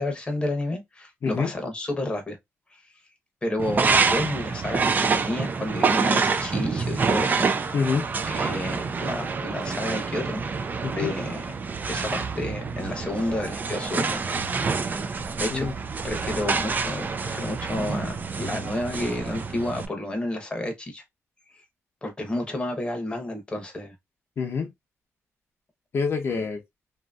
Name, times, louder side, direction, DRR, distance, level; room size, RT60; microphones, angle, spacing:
voice 1, 0.0-2.4 2.7-2.8 3.4-7.5 8.2-10.4 10.9-11.6 11.9-14.5 15.4-15.7 16.0-21.0 21.5-21.6 22.0-24.0, left 1 dB, 20° left, 0.8 m, -31 dB
sound 1, 3.6-19.9, right 5 dB, 35° right, 0.4 m, -27 dB
voice 2, 7.7-8.1 10.8-11.1 15.5-15.7 24.4-24.7 25.9-26.6, left 5 dB, 55° left, 0.6 m, -26 dB
2.7 x 2.6 x 2.2 m
wide cardioid pair, 125°, 5 cm